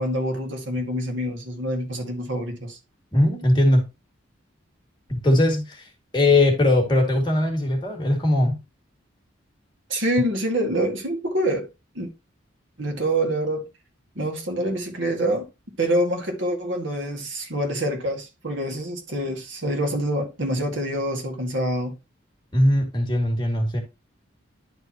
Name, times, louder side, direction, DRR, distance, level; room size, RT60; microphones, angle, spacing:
voice 1, 0.0-2.8 9.9-11.7 12.0-12.1 12.8-13.6 14.2-15.5 15.8-21.9, right 1 dB, 70° right, 2.0 m, -26 dB
voice 2, 3.1-3.8 5.1-8.6 22.5-23.8, left 1 dB, 25° left, 2.2 m, -20 dB
11.0 x 4.4 x 2.9 m
head